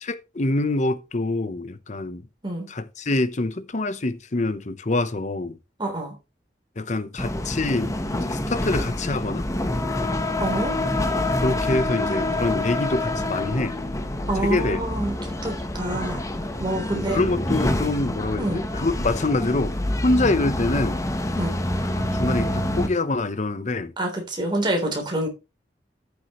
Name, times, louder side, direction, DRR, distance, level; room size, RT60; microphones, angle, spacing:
voice 1, 0.0-2.2 2.7-5.6 6.8-9.5 11.4-13.8 14.4-14.8 16.8-19.7 20.0-21.0 21.9-23.9, left 2 dB, 45° left, 0.8 m, -25 dB
voice 2, 5.8-6.2 10.4-10.8 14.3-16.2 16.6-17.2 18.4-18.7 21.4-21.6 24.0-25.3, right 1 dB, 25° right, 3.4 m, -27 dB
sound 1, 7.2-22.9, left 1 dB, 20° left, 0.9 m, -27 dB
13.5 x 7.0 x 3.1 m
head